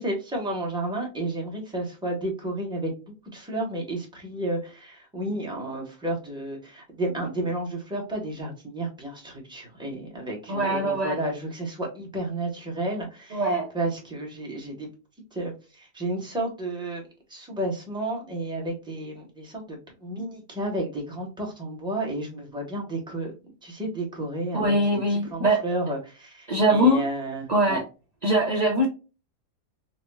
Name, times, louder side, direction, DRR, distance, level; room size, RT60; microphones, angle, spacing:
voice 1, 0.0-13.5 13.7-14.9 15.3-17.0 17.3-23.3 23.6-24.8 25.1-27.8, right 1 dB, 5° right, -1 dB, 0.7 m, -32 dB
voice 2, 10.5-11.2 13.3-13.7 24.5-25.6 26.5-27.0 27.5-27.9 28.2-28.9, right 1 dB, 60° right, -2 dB, 0.4 m, -22 dB
4.2 x 2.1 x 2.2 m, 0.31 s
omnidirectional pair, 1.7 m